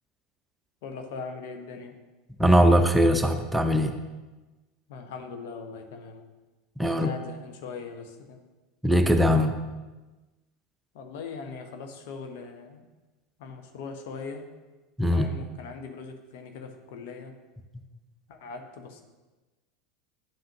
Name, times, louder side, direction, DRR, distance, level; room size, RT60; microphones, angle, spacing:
voice 1, 0.8-2.0 4.9-6.3 6.8-8.4 10.9-12.9 13.4-14.5 15.1-17.4 18.3-19.0, left 4 dB, 60° left, 6 dB, 1.0 m, -40 dB
voice 2, 2.4-3.9 6.8-7.1 8.8-9.6 15.0-15.3, equal, 5° right, 7 dB, 0.7 m, -20 dB
10.5 x 7.5 x 2.9 m, 1.2 s
figure-of-eight pair, 75°, 0 cm